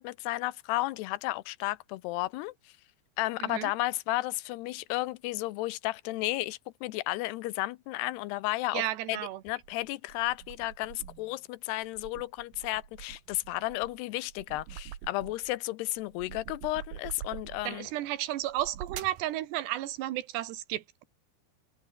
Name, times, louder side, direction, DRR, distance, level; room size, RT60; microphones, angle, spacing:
voice 1, 0.0-2.5 3.2-8.8 9.1-17.9, left 18 dB, 85° left, 2.8 m, -33 dB
voice 2, 3.4-3.7 8.7-9.4 17.6-21.0, right 14 dB, 90° right, 3.6 m, -33 dB
sound 1, 9.5-11.3 11.8-15.6 16.0-17.8 18.4-19.3, right 10 dB, 65° right, 3.7 m, -45 dB
omnidirectional pair, 4.7 m